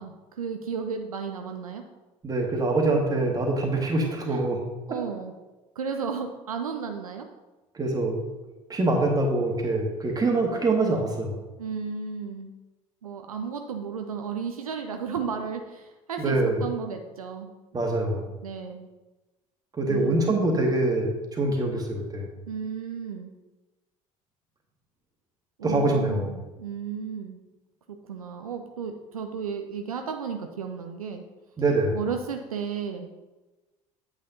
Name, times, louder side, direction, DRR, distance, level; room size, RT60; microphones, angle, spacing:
voice 1, 0.0-1.8 4.3-4.5 4.9-5.3 5.8-7.3 11.6-12.5 13.0-17.8 18.4-18.9 19.9-20.4 22.5-23.3 25.6-27.4 27.9-31.2 31.9-33.1, right 6 dB, 80° right, 5 dB, 0.5 m, -34 dB
voice 2, 2.2-4.6 7.7-8.2 8.7-11.4 16.2-16.6 17.7-18.3 19.8-22.3 25.6-26.3 31.6-32.0, right 2 dB, 20° right, 1 dB, 1.6 m, -24 dB
8.7 x 7.4 x 2.8 m, 1.1 s
figure-of-eight pair, 65°, 18 cm